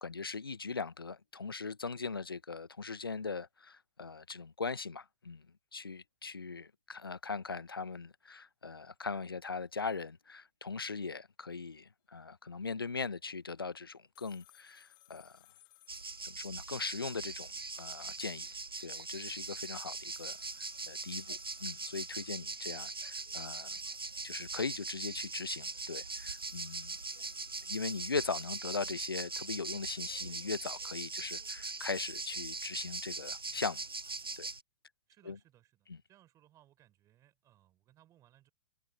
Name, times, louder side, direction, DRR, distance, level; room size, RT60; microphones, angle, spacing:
voice 1, 0.0-5.4 5.7-15.3 16.2-17.5 17.8-18.5 18.8-20.4 20.9-23.7 24.2-26.9 27.7-33.8 34.4-34.5 35.3-35.4 35.9-36.0, left 4 dB, 85° left, 0.8 m, -40 dB
sound 1, 14.2-17.2 17.5-17.6 20.1-23.1 26.1-29.1, left 18 dB, 35° left, 1.6 m, -64 dB
sound 2, 15.9-34.6, right 3 dB, 85° right, 1.0 m, -41 dB
voice 2, 35.1-38.5, right 13 dB, 25° right, 3.8 m, -65 dB
figure-of-eight pair, 105°, 12 cm